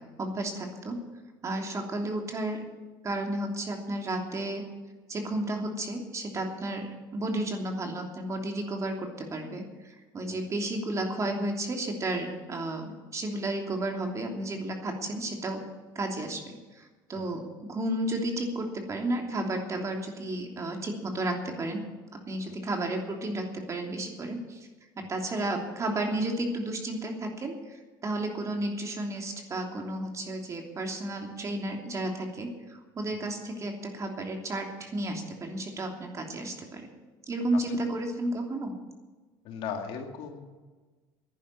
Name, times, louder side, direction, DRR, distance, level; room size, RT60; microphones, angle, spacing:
voice 1, 0.2-1.0 1.4-2.6 3.0-4.6 5.1-15.6 15.9-21.8 22.3-24.7 25.0-36.9 37.3-38.7, right 1 dB, 30° right, 2 dB, 3.0 m, -32 dB
voice 2, 39.4-40.5, left 6 dB, 65° left, 3 dB, 2.3 m, -37 dB
11.0 x 10.0 x 10.0 m, 1.3 s
supercardioid pair, 100°, 10 cm